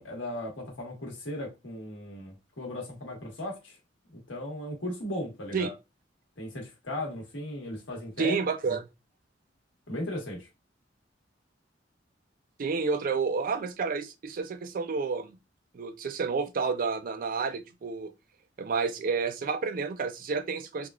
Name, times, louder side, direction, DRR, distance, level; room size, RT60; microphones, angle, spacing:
voice 1, 0.0-3.8 4.1-5.7 6.4-8.4 8.7-8.8 9.9-10.5, left 1 dB, 90° left, 1.4 m, -37 dB
voice 2, 8.2-8.8 12.6-15.4 15.7-18.1 18.6-20.9, right 5 dB, 50° right, 0.4 m, -30 dB
3.6 x 2.3 x 2.3 m
head